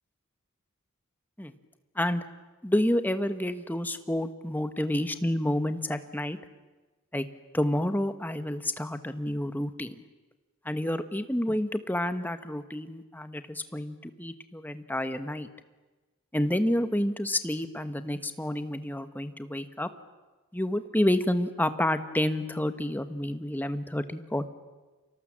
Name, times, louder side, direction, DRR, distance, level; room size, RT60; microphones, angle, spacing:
voice 1, 2.6-6.4 7.1-7.3 7.5-10.0 10.6-15.5 16.3-19.9 20.5-24.5, left 1 dB, 10° left, 10 dB, 1.1 m, -29 dB
30.0 x 24.5 x 7.4 m, 1.2 s
head